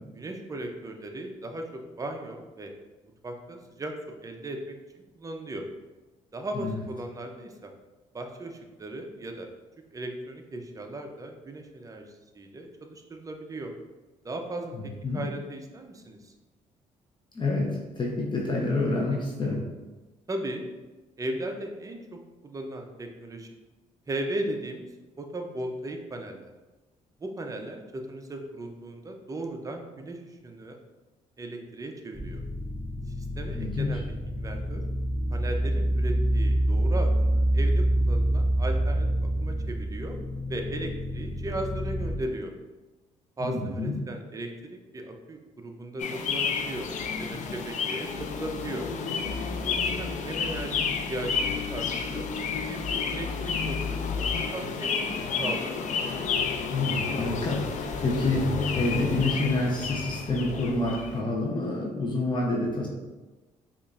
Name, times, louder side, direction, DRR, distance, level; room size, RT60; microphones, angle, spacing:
voice 1, 0.1-2.7 3.2-5.7 6.3-7.7 8.1-9.5 9.9-13.7 14.2-16.3 20.3-20.6 21.2-23.5 24.1-24.9 25.2-26.5 27.2-30.8 31.4-32.4 33.2-34.8 35.3-40.2 40.5-42.5 43.4-46.9 47.2-48.9 49.6-52.3 52.7-55.8, right 1 dB, 25° right, 4 dB, 0.6 m, -37 dB
voice 2, 14.7-15.2 17.3-19.6 33.5-33.9 43.4-43.9 56.7-62.9, left 2 dB, 35° left, -2 dB, 0.8 m, -28 dB
sound 1, 32.1-42.1, right 1 dB, 10° left, 1.2 m, -27 dB
sound 2, 46.0-61.2, left 5 dB, 60° left, 0.4 m, -30 dB
5.1 x 2.5 x 2.5 m, 1.2 s
cardioid pair, 80°, 14 cm